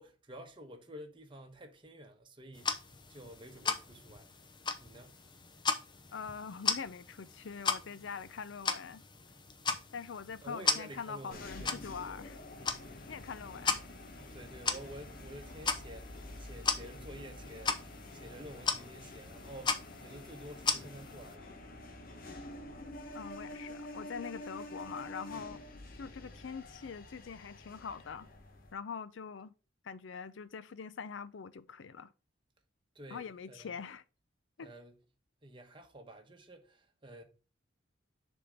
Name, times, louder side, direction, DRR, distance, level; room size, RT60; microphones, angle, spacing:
voice 1, 0.0-2.8 3.1-4.3 4.8-5.2 10.4-11.7 12.6-12.9 14.3-21.9 26.0-26.1 32.9-33.8 34.6-35.0 35.4-37.2, right 1 dB, 25° right, 1.1 m, -50 dB
sound 1, 2.5-21.3, left 5 dB, 25° left, 0.7 m, -38 dB
voice 2, 6.1-9.0 9.9-12.4 13.1-13.8 23.1-25.6 26.0-28.3 28.7-29.5 29.8-32.1 33.1-34.0 34.6-34.7, left 6 dB, 70° left, 0.5 m, -43 dB
sound 2, 11.3-28.7, left 1 dB, 50° left, 1.2 m, -48 dB
6.8 x 3.7 x 5.2 m
head